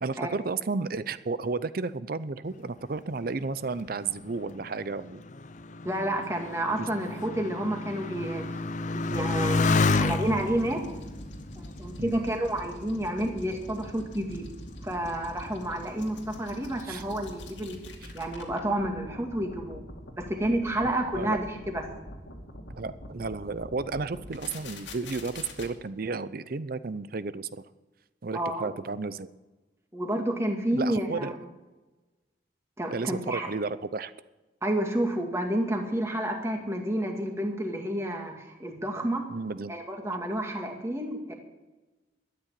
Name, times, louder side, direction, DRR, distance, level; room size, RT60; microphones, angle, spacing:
voice 1, 0.0-5.2 6.8-6.9 12.0-12.2 16.9-17.0 21.1-21.4 22.7-27.5 28.2-29.3 30.7-31.3 32.9-34.1 39.3-39.7, right 4 dB, 50° right, 15 dB, 0.6 m, -32 dB
Motorcycle, 3.9-12.9 13.6-14.2, left 3 dB, 40° left, 0.5 m, -30 dB
voice 2, 5.8-8.5 8.8-10.8 11.6-14.5 14.8-17.8 18.1-19.8 20.2-21.8 28.3-28.7 29.9-31.4 32.8-33.5 34.6-39.3 39.7-41.3, right 1 dB, 15° right, 2 dB, 2.1 m, -30 dB
sound 1, 9.1-25.7, left 1 dB, 75° left, 2.5 m, -44 dB
13.0 x 10.0 x 7.6 m, 1.1 s
head